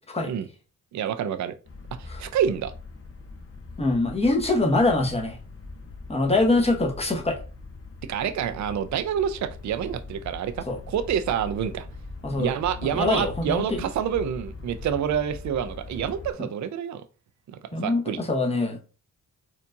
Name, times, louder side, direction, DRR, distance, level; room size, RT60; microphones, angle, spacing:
voice 1, 0.9-1.6 2.0-2.7 8.0-11.9 12.4-17.0 17.5-18.2, right 8 dB, 60° right, 0.5 m, -28 dB
sound 1, 1.6-16.3, left 3 dB, 45° left, 1.0 m, -41 dB
voice 2, 3.8-5.4 6.1-7.4 10.7-10.8 12.2-12.5 12.8-13.8 17.7-18.8, left 2 dB, 20° left, 1.1 m, -24 dB
4.4 x 2.5 x 2.6 m
cardioid pair, 70°, 33 cm